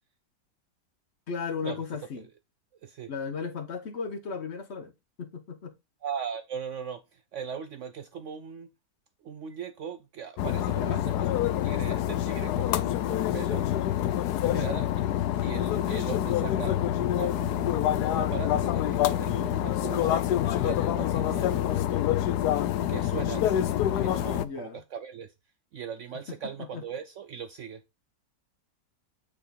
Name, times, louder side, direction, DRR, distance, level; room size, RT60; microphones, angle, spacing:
voice 1, 1.3-2.2 3.1-4.9 5.2-5.7 10.8-11.0 14.4-14.8 21.1-22.1 24.3-24.8 26.6-26.8, left 5 dB, 50° left, 0.8 m, -36 dB
voice 2, 2.8-3.1 6.0-8.7 9.2-11.3 11.6-13.7 14.4-14.9 15.4-20.2 20.6-21.6 22.8-25.3 25.7-27.8, right 7 dB, 80° right, 0.6 m, -39 dB
sound 1, 10.4-24.5, left 12 dB, 70° left, 1.1 m, -26 dB
8.6 x 3.8 x 4.0 m
omnidirectional pair, 1.9 m